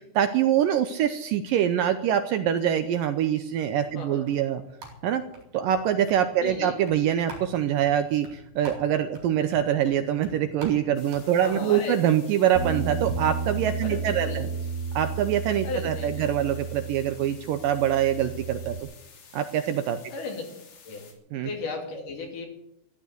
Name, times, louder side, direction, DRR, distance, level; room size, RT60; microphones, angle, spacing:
voice 1, 0.0-4.6 5.0-5.2 5.5-14.5 15.0-18.8 19.3-20.0 21.3-21.5, right 10 dB, 75° right, 9 dB, 2.2 m, -24 dB
sound 1, 3.5-13.2, right 2 dB, 55° right, 5.6 m, -47 dB
voice 2, 4.0-4.3 6.4-6.8 11.4-12.0 13.8-14.5 15.6-16.3 20.1-20.4 20.9-22.5, left 3 dB, 55° left, 2 dB, 4.1 m, -35 dB
sound 2, 11.0-21.1, left 6 dB, 85° left, 5.2 m, -52 dB
Bass guitar, 12.5-18.8, right 5 dB, 30° right, 2.2 m, -33 dB
14.5 x 11.5 x 8.1 m, 0.80 s
omnidirectional pair, 4.6 m